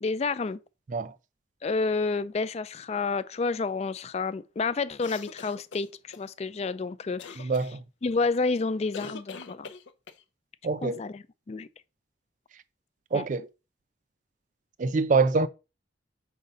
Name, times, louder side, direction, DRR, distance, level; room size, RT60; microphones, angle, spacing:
voice 1, 0.0-0.6 1.6-7.5 8.0-9.7 10.8-11.7 13.1-13.3, left 4 dB, 35° left, 0.4 m, -30 dB
sound 1, 5.0-6.2 7.2-7.7 8.9-10.2, left 5 dB, 75° left, 0.6 m, -43 dB
voice 2, 7.4-7.8 10.6-11.0 13.1-13.5 14.8-15.5, right 4 dB, 45° right, 0.4 m, -25 dB
4.8 x 3.9 x 5.4 m
head